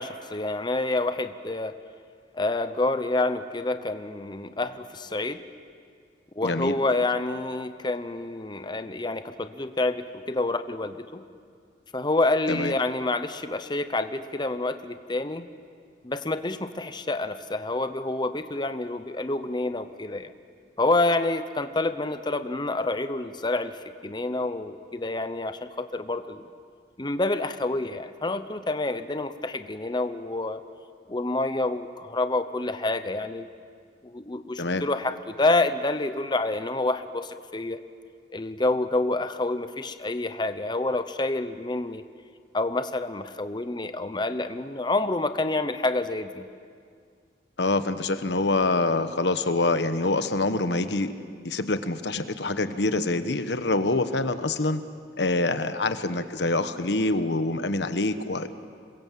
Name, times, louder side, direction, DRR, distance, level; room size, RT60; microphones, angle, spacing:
voice 1, 0.0-1.8 2.3-5.4 6.4-11.2 11.9-15.4 16.0-20.3 20.8-26.5 27.0-30.6 31.1-33.5 34.0-37.8 38.3-42.0 42.5-46.4, left 2 dB, 25° left, 10 dB, 0.9 m, -28 dB
voice 2, 6.4-6.8 12.5-12.7 34.6-34.8 47.6-51.1 51.4-54.8 55.2-58.5, left 2 dB, 75° left, 10 dB, 1.2 m, -25 dB
27.5 x 22.0 x 7.6 m, 2.1 s
head